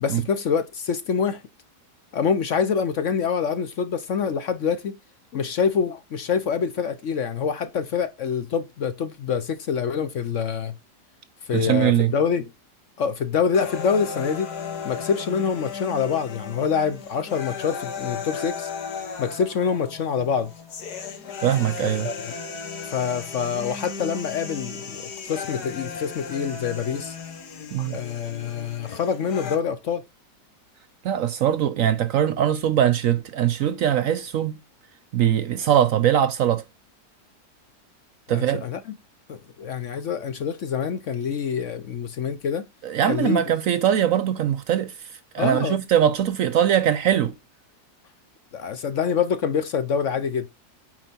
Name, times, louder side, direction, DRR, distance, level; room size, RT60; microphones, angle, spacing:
voice 1, 0.0-1.4 2.1-5.0 5.3-10.7 11.5-12.4 13.0-14.5 14.8-18.7 19.2-20.5 21.8-22.3 22.9-27.1 27.8-30.0 38.3-39.0 39.3-42.6 43.1-43.4 45.4-45.8 48.5-50.5, left 6 dB, 60° left, 1.0 m, -26 dB
voice 2, 11.5-12.1 21.4-22.1 27.7-28.0 31.0-34.5 35.1-36.6 38.3-38.6 42.8-44.9 45.3-47.3, right 10 dB, 65° right, 0.9 m, -21 dB
sound 1, 13.5-29.6, left 5 dB, 75° left, 1.9 m, -35 dB
8.9 x 4.7 x 4.4 m
omnidirectional pair, 1.8 m